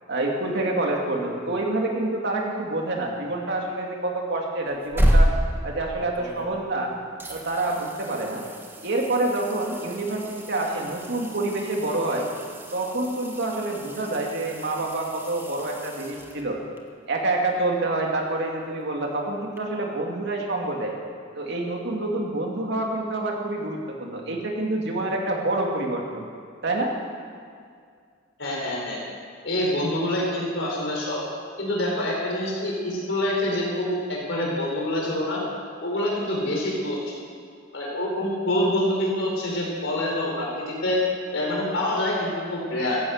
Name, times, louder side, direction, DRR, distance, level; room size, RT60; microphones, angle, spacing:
voice 1, 0.1-5.3 5.6-6.9 7.3-8.4 8.8-12.3 12.7-16.6 17.1-20.9 21.3-26.2 26.6-26.9, right 2 dB, 60° right, 0 dB, 2.6 m, -27 dB
sound 1, 4.7-6.8 7.2-16.8 19.6-19.7, equal, 10° right, 1.4 m, -29 dB
voice 2, 28.4-29.0 29.4-31.2 31.6-35.4 35.8-37.1 37.7-41.0 41.3-43.0, left 1 dB, 65° left, -3 dB, 4.5 m, -26 dB
15.0 x 11.0 x 8.0 m, 2.2 s
head